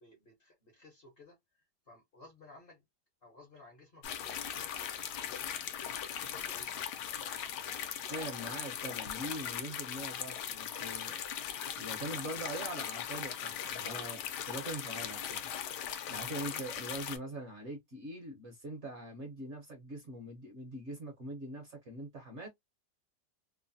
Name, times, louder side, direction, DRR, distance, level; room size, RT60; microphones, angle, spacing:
voice 1, 0.0-2.8 3.2-6.8, left 2 dB, 50° left, 0.8 m, -58 dB
sound 1, 4.0-17.2, left 9 dB, 80° left, 1.1 m, -39 dB
voice 2, 8.1-11.2 11.7-15.5 16.1-22.5, right 1 dB, 55° right, 0.9 m, -43 dB
3.0 x 2.1 x 2.5 m
omnidirectional pair, 1.8 m